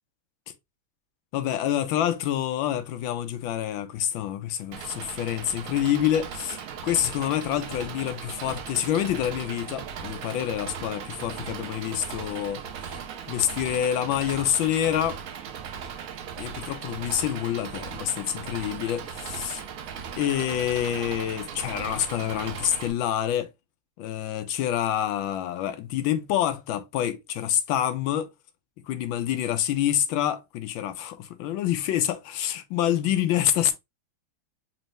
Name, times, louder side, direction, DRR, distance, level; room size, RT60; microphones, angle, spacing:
voice 1, 1.3-12.6 13.3-15.2 16.4-19.6 20.2-23.5 24.0-28.3 28.9-33.7, left 11 dB, 80° left, 1.3 m, -27 dB
Engine, 4.7-22.9, right 7 dB, 90° right, 0.7 m, -38 dB
4.2 x 2.6 x 3.1 m
omnidirectional pair, 2.2 m